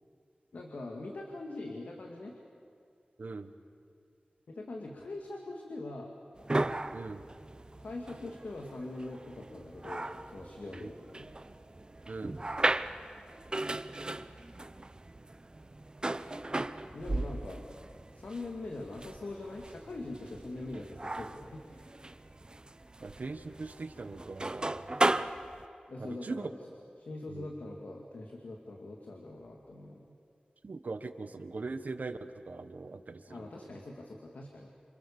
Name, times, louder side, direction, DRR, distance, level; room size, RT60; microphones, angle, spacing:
voice 1, 0.5-2.4 4.5-6.1 7.8-11.3 16.9-17.7 18.1-21.9 25.9-26.5 27.0-30.2 33.3-34.7, left 2 dB, 85° left, 1 dB, 2.5 m, -42 dB
voice 2, 3.2-3.5 6.9-7.2 10.8-10.9 12.1-12.4 23.0-24.8 26.0-26.5 27.3-27.5 30.6-32.2 32.5-33.5, right 3 dB, 70° right, 9 dB, 1.4 m, -40 dB
sound 1, 6.4-25.7, right 2 dB, 30° right, 0.8 m, -37 dB
29.0 x 27.0 x 7.1 m, 2.3 s
wide cardioid pair, 75°, 3 cm